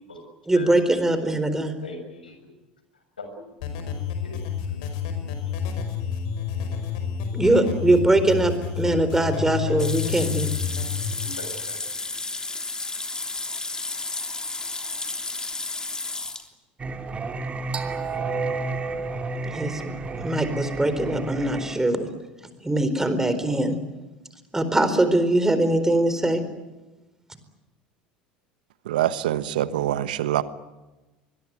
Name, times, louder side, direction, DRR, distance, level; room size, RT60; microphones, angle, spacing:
voice 1, 0.5-1.7 7.3-10.5 19.4-22.1 22.6-23.8 24.5-26.4, right 1 dB, 10° right, 10 dB, 4.3 m, -22 dB
voice 2, 1.7-2.5 3.2-3.4 4.2-4.4 5.0-5.1 6.6-6.7 9.3-9.8 11.2-11.8, left 2 dB, 90° left, 6 dB, 6.9 m, -40 dB
sound 1, 3.6-11.1, left 8 dB, 65° left, 5.3 m, -29 dB
sound 2, 9.8-16.5, left 3 dB, 15° left, 3.2 m, -32 dB
Singing, 16.8-21.8, right 3 dB, 25° right, 3.0 m, -30 dB
voice 3, 28.9-30.4, right 12 dB, 75° right, 15 dB, 1.2 m, -24 dB
25.0 x 21.5 x 9.5 m, 1.1 s
hypercardioid pair, 75°, 5 cm